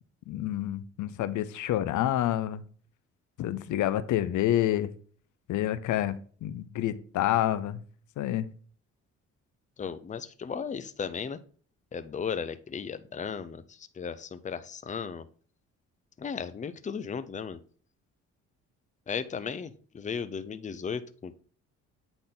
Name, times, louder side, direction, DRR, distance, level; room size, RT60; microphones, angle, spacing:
voice 1, 0.3-2.6 3.4-4.9 5.5-7.8 8.2-8.5, left 12 dB, 75° left, 14 dB, 0.6 m, -28 dB
voice 2, 9.8-11.4 11.9-15.3 16.2-17.6 19.1-21.3, left 6 dB, 25° left, 12 dB, 0.6 m, -35 dB
8.6 x 4.0 x 3.9 m, 0.43 s
cardioid pair, 90°, 30 cm